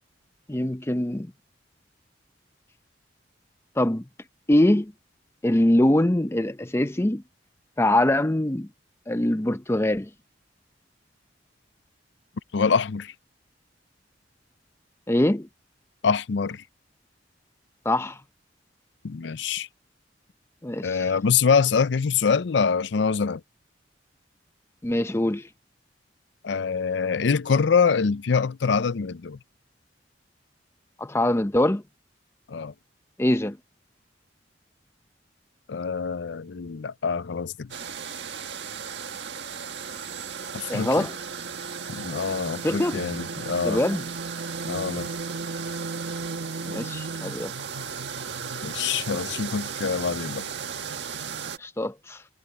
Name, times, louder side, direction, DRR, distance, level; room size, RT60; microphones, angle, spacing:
voice 1, 0.5-1.3 3.8-4.0 4.5-4.9 5.4-7.2 7.8-8.7 9.1-10.1 15.1-15.5 17.8-18.2 20.6-21.0 24.8-25.5 31.0-31.8 33.2-33.6 40.7-41.1 42.6-43.0 43.6-44.0 46.6-47.5 51.6-52.2, left 1 dB, 15° left, 0.6 m, -23 dB
voice 2, 12.5-13.1 16.0-16.6 19.0-19.7 20.8-23.4 26.4-29.4 32.5-32.7 35.7-37.7 40.5-41.1 41.9-43.8 44.6-45.1 48.6-50.4, left 5 dB, 70° left, 0.5 m, -25 dB
sound 1, 37.7-51.6, right 5 dB, 70° right, 1.6 m, -34 dB
head